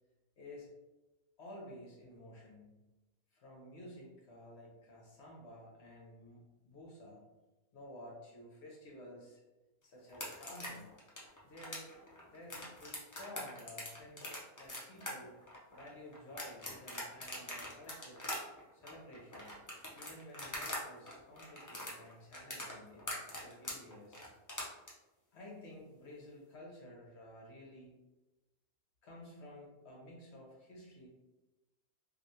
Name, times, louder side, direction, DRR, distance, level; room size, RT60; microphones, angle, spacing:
voice 1, 0.4-0.7 1.4-2.8 3.3-7.2 7.7-9.4 9.8-11.0 11.4-11.9 12.3-15.4 15.7-18.2 18.7-19.6 19.9-24.2 25.3-28.0 29.0-31.1, left 1 dB, 55° left, -3 dB, 1.0 m, -53 dB
sound 1, 10.1-20.8 21.1-24.9, left 1 dB, 30° left, 0.3 m, -43 dB
3.3 x 2.7 x 2.7 m, 1.1 s
omnidirectional pair, 1.5 m